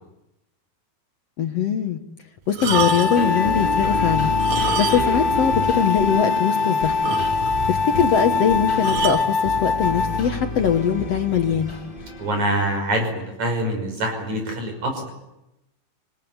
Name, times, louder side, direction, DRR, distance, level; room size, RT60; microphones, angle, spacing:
voice 1, 1.4-2.0 2.5-4.3 4.8-7.0 7.7-11.7, left 8 dB, 60° left, 6 dB, 2.0 m, -22 dB
sound 1, 2.5-3.4 4.3-5.3 5.6-5.7 6.2-6.3 6.6-6.7 7.0-7.7 8.8-9.3 10.1-10.4, right 9 dB, 75° right, 2.7 m, -28 dB
sound 2, 2.6-10.2, left 4 dB, 90° left, 0.8 m, -23 dB
sound 3, 3.1-12.8, left 1 dB, 20° left, 1.6 m, -30 dB
voice 2, 12.2-15.1, right 1 dB, 60° right, 4 dB, 7.0 m, -25 dB
27.0 x 19.5 x 9.6 m, 0.93 s
omnidirectional pair, 3.8 m